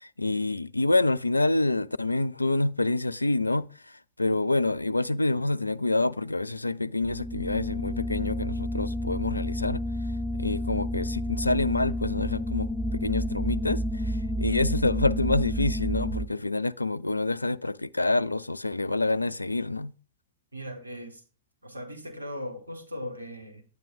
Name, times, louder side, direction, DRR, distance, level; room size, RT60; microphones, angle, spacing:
voice 1, 0.0-3.7 4.2-9.8 10.3-19.9, left 2 dB, 85° left, 0.3 m, -27 dB
sound 1, 7.0-16.3, equal, 10° right, 0.7 m, -30 dB
voice 2, 20.5-21.2 21.6-23.6, left 1 dB, 85° right, 1.6 m, -38 dB
10.5 x 8.9 x 2.6 m
figure-of-eight pair, 90°, 0 cm